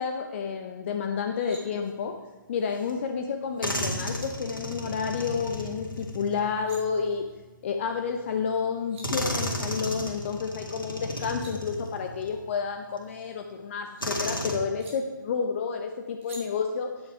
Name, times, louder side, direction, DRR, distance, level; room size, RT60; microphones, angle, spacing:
voice 1, 0.0-2.2 2.5-7.2 7.6-16.9, left 6 dB, 35° left, 4 dB, 0.7 m, -30 dB
sound 1, 1.1-1.6 3.7-3.8 4.1-4.3 6.4-6.8 8.5-8.6 8.7-9.1 11.0-11.5 13.0-14.0 14.8-14.9 16.2-16.4, right 2 dB, 40° right, 3.1 m, -49 dB
sound 2, 2.9-3.0 3.6-7.2 8.2-8.3 9.0-12.4 13.0-13.1 14.0-14.6, equal, 85° left, 2.0 m, -34 dB
8.9 x 8.7 x 4.8 m, 1.2 s
figure-of-eight pair, 130°, 11 cm